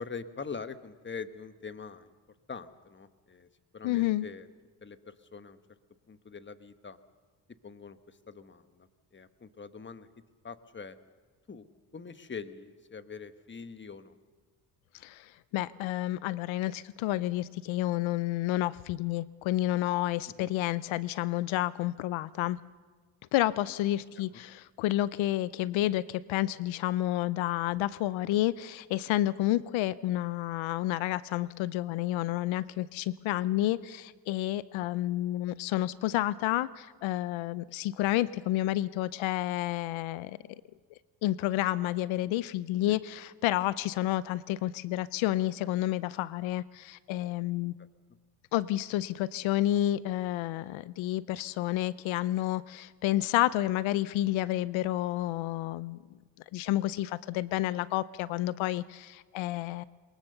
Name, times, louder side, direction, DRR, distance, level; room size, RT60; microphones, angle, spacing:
voice 1, 0.0-2.1 2.5-4.5 4.8-5.6 6.1-7.0 7.5-10.1 10.4-11.0 11.5-11.7 11.9-14.2 20.2-20.5 24.2-24.4 34.8-35.2 42.9-43.0 47.8-47.9, left 5 dB, 25° left, 11 dB, 1.2 m, -44 dB
voice 2, 3.8-4.3 15.0-22.6 23.3-40.4 41.2-47.7 48.5-56.0 56.5-59.8, left 15 dB, 85° left, 18 dB, 0.6 m, -30 dB
22.5 x 20.5 x 6.8 m, 1.4 s
cardioid pair, 80°, 46 cm